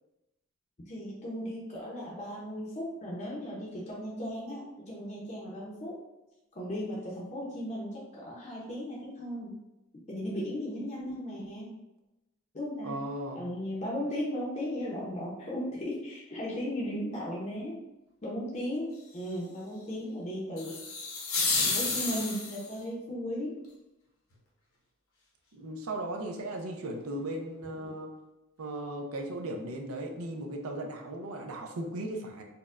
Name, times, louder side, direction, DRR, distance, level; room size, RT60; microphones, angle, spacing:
voice 1, 0.9-6.0 6.5-9.5 10.1-11.8 12.5-13.0 13.3-17.8 18.2-20.8 21.6-23.6, equal, 35° left, -5 dB, 0.6 m, -36 dB
voice 2, 12.8-13.4 25.5-28.1 28.6-32.4, right 1 dB, 80° right, 3 dB, 0.5 m, -37 dB
sound 1, 20.6-22.7, left 3 dB, 70° left, 0.8 m, -30 dB
4.2 x 2.1 x 2.4 m, 0.95 s
head